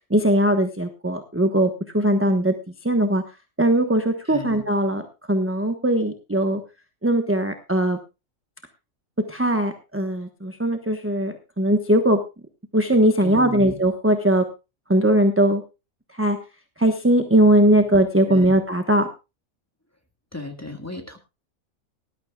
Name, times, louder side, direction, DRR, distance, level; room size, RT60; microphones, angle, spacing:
voice 1, 0.1-2.5 2.8-3.2 3.6-5.0 5.3-6.6 7.0-8.0 9.3-12.2 12.7-14.4 14.9-15.6 16.2-16.4 16.8-19.1, right 1 dB, 10° right, 6 dB, 1.0 m, -20 dB
voice 2, 4.3-4.6 13.2-13.8 18.3-18.6 20.3-21.2, left 2 dB, 10° left, 5 dB, 1.8 m, -34 dB
19.0 x 12.5 x 2.3 m, 0.27 s
omnidirectional pair, 1.4 m